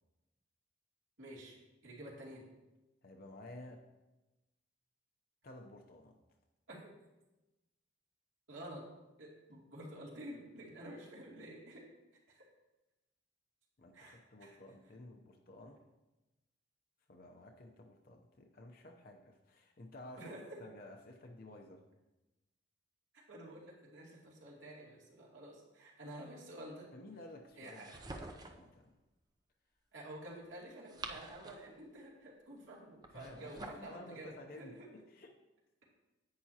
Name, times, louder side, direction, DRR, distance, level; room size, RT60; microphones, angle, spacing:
voice 1, 1.2-1.5 1.8-2.4 6.7-6.8 8.5-8.8 9.2-11.8 12.3-12.4 13.9-14.6 20.2-20.4 23.3-26.9 27.5-28.1 29.9-34.9, right 1 dB, 75° right, -5 dB, 2.6 m, -50 dB
voice 2, 3.0-3.9 5.4-6.1 13.8-15.8 17.1-20.3 20.6-21.8 26.9-28.9 33.1-35.3, left 1 dB, 45° left, 2 dB, 0.7 m, -53 dB
sound 1, 27.6-28.7 30.6-31.8 33.0-33.9, right 2 dB, 20° right, 0.5 m, -48 dB
10.5 x 8.7 x 2.8 m, 1.0 s
head